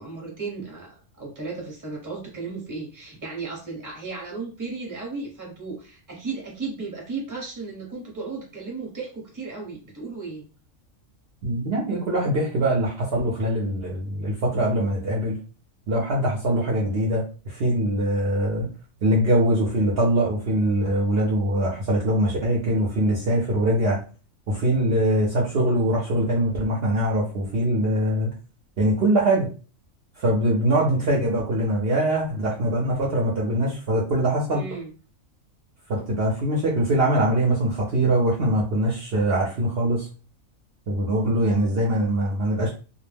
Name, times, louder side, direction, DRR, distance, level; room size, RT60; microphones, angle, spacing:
voice 1, 0.0-10.4 34.5-34.9, right 4 dB, 15° right, -2 dB, 0.8 m, -35 dB
voice 2, 11.4-15.4 15.9-18.7 19.0-24.0 24.5-28.3 28.8-29.5 30.2-34.6 35.9-40.1 40.9-42.7, right 1 dB, 60° right, -3 dB, 0.7 m, -22 dB
2.3 x 2.0 x 3.2 m, 0.36 s
omnidirectional pair, 1.4 m